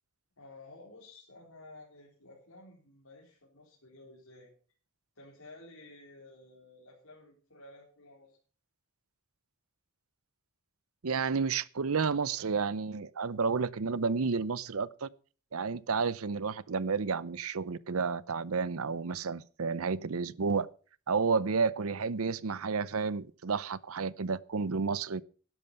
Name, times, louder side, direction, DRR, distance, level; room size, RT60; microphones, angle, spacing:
voice 1, 0.4-4.5 5.2-8.4, left 2 dB, 75° left, 4.1 m, -53 dB
voice 2, 11.0-15.1 15.5-20.7 21.1-25.2, right 5 dB, 70° right, 0.7 m, -31 dB
12.5 x 11.0 x 5.6 m
head